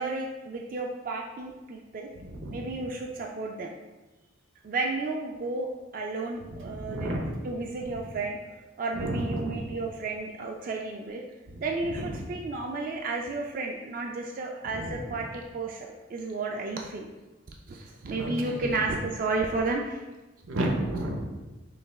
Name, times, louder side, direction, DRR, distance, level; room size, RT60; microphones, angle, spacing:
voice 1, 0.0-2.1 2.5-3.7 4.6-7.1 7.4-8.4 8.8-11.2 11.6-17.1 17.7-20.0, right 3 dB, 45° right, 0 dB, 0.3 m, -32 dB
voice 2, 2.2-2.8 6.5-7.3 7.8-8.0 8.9-9.7 11.5-12.3 14.6-15.2 18.0-18.6 20.4-21.2, right 1 dB, 85° right, 2 dB, 0.7 m, -33 dB
5.7 x 3.2 x 2.3 m, 1.1 s
head